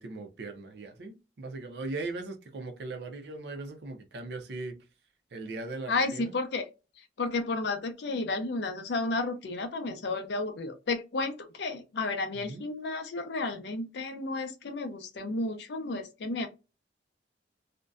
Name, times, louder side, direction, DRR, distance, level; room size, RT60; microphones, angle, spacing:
voice 1, 0.0-4.8 5.3-6.4 12.3-12.7, right 3 dB, 65° right, 0.5 m, -39 dB
voice 2, 5.9-6.7 7.2-16.5, left 3 dB, 70° left, 0.5 m, -32 dB
2.5 x 2.1 x 2.3 m
head